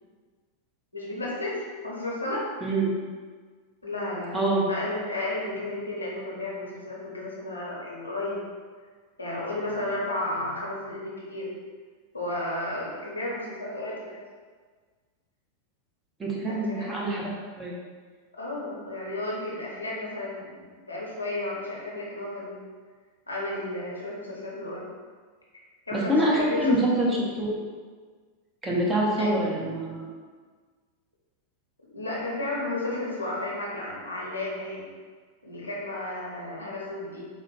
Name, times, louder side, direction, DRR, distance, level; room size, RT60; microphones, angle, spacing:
voice 1, 0.9-2.5 3.8-4.4 4.7-8.4 9.2-11.5 12.1-14.2 16.4-16.9 18.4-22.6 23.3-24.8 25.9-26.7 29.2-29.3 31.9-34.8 35.4-37.3, left 1 dB, 80° left, -4 dB, 0.8 m, -33 dB
voice 2, 2.6-2.9 4.3-4.6 16.2-17.3 17.6-17.7 25.9-27.1 27.4-27.6 28.6-30.1, right 1 dB, 15° right, -4 dB, 0.7 m, -25 dB
4.0 x 2.1 x 3.1 m, 1.5 s
figure-of-eight pair, 90°, 0 cm